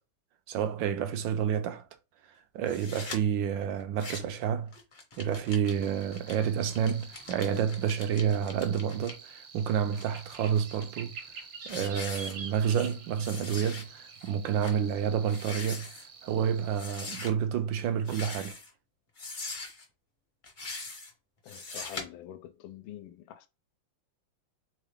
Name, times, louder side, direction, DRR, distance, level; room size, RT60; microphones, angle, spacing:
voice 1, 0.5-1.9 2.5-4.7 5.2-11.1 11.7-15.9 16.2-18.6, right 8 dB, 75° right, 1.3 m, -29 dB
sound 1, 2.7-3.2 3.8-4.4 4.7-9.1 9.7-10.8 11.3-11.4 11.7-12.9 13.2-13.8 14.2-14.3 14.6-14.8 15.2-16.1 16.7-17.3 18.0-18.7 19.2-19.8 20.4-21.1 21.5-22.0, left 3 dB, 35° left, 0.8 m, -42 dB
sound 2, 5.7-17.1, right 5 dB, 50° right, 0.9 m, -48 dB
voice 2, 21.4-23.5, left 11 dB, 80° left, 1.3 m, -45 dB
3.7 x 3.6 x 3.5 m
omnidirectional pair, 2.1 m